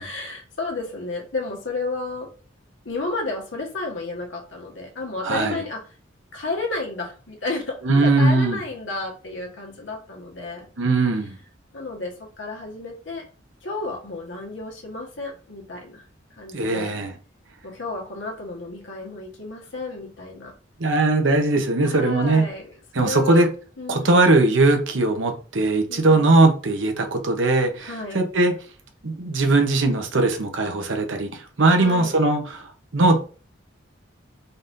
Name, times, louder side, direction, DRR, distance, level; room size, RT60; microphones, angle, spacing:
voice 1, 0.0-2.3 2.8-5.8 6.3-10.7 11.7-13.2 13.6-16.0 16.3-16.9 17.6-20.5 21.8-23.5 23.8-24.1 25.9-26.3 27.8-28.2 31.8-32.1, left 3 dB, 85° left, 1.4 m, -32 dB
voice 2, 5.2-5.6 7.8-8.6 10.8-11.4 16.5-17.1 20.8-22.5 22.9-23.5 23.9-28.5 29.0-32.7 32.9-33.2, right 2 dB, 85° right, 0.9 m, -20 dB
4.0 x 2.6 x 3.6 m
head